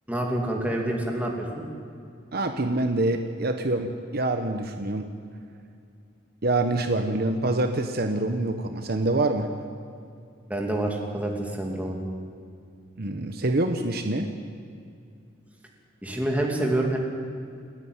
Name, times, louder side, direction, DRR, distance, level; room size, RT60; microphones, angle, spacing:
voice 1, 0.1-1.6 10.5-12.0 16.0-17.0, right 1 dB, 5° right, 0 dB, 2.7 m, -27 dB
voice 2, 2.3-5.1 6.4-9.5 13.0-14.3, right 2 dB, 50° right, 6 dB, 1.0 m, -26 dB
29.0 x 9.8 x 9.6 m, 2.4 s
head